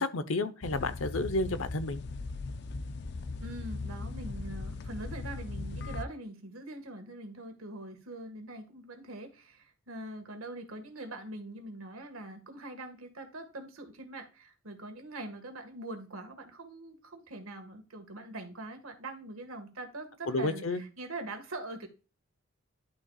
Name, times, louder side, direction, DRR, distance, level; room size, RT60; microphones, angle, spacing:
voice 1, 0.0-2.0 20.3-20.8, left 2 dB, 75° left, 0.8 m, -31 dB
sound 1, 0.6-6.1, left 3 dB, 55° left, 0.5 m, -38 dB
voice 2, 3.4-21.9, right 2 dB, 85° right, 1.7 m, -43 dB
11.5 x 5.8 x 2.4 m
head